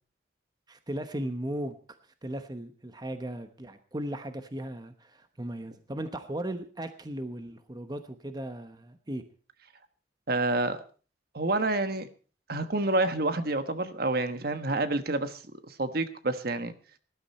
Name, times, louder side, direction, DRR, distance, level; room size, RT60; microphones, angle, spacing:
voice 1, 0.7-9.2, right 1 dB, 20° right, 8 dB, 1.0 m, -37 dB
voice 2, 10.3-10.8 11.3-12.1 12.5-16.7, right 2 dB, 55° right, 10 dB, 1.2 m, -28 dB
19.0 x 12.0 x 4.3 m, 0.38 s
head